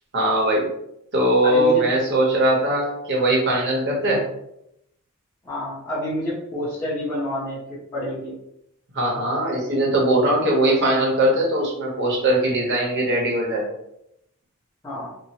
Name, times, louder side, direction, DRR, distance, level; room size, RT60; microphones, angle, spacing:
voice 1, 0.1-0.7 1.1-4.2 8.9-13.7, right 1 dB, 50° right, -2 dB, 0.9 m, -20 dB
voice 2, 1.4-1.8 5.4-8.3 9.7-9.8 14.8-15.1, left 1 dB, 15° left, -13 dB, 0.8 m, -28 dB
3.0 x 2.0 x 2.8 m, 0.80 s
head